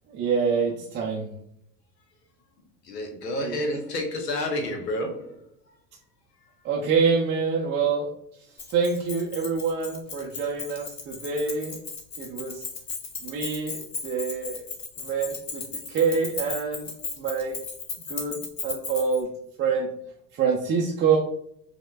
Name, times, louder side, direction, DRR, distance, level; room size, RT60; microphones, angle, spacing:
voice 1, 0.1-1.3 3.4-3.6 6.6-8.1 8.7-11.8 12.2-12.6 13.2-14.6 15.0-16.9 17.2-17.6 18.1-19.3 19.6-19.9 20.3-21.2, right 5 dB, 25° right, 0.4 m, -26 dB
voice 2, 2.9-5.4, left 1 dB, 85° left, 0.9 m, -29 dB
Keys jangling, 8.6-19.2, left 5 dB, 35° left, 1.0 m, -36 dB
4.9 x 2.1 x 2.2 m
hypercardioid pair, 80°, 47 cm